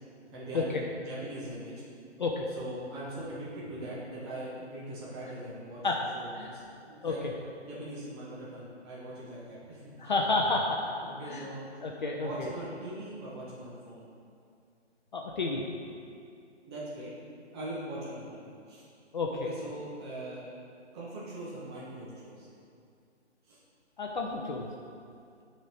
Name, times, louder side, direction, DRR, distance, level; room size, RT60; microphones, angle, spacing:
voice 1, 0.3-1.8 2.5-5.9 6.1-7.2 7.6-10.1 11.0-11.7 12.1-14.1 16.7-17.1 17.5-18.8 19.3-20.5 20.9-22.5 23.4-23.6, right 1 dB, 20° right, -8 dB, 1.5 m, -41 dB
voice 2, 7.0-7.3 10.0-10.8 11.3-11.5 11.8-12.5 15.1-15.6 19.1-19.5 24.0-24.7, left 3 dB, 40° left, 0 dB, 0.7 m, -30 dB
10.0 x 4.4 x 5.3 m, 2.4 s
hypercardioid pair, 155°, 35 cm